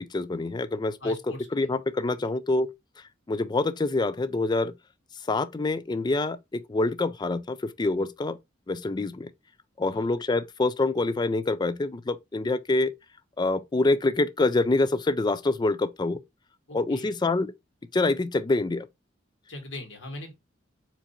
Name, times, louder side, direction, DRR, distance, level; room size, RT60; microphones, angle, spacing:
voice 1, 0.0-1.2 1.5-2.7 3.3-4.7 5.3-8.4 8.7-9.3 9.8-12.9 13.4-16.2 16.7-17.5 17.9-18.9, left 2 dB, 25° left, 0.4 m, -26 dB
voice 2, 1.0-1.5 2.2-2.3 9.8-10.1 16.7-17.1 19.5-20.3, left 1 dB, 75° left, 1.7 m, -40 dB
4.5 x 2.7 x 4.1 m
head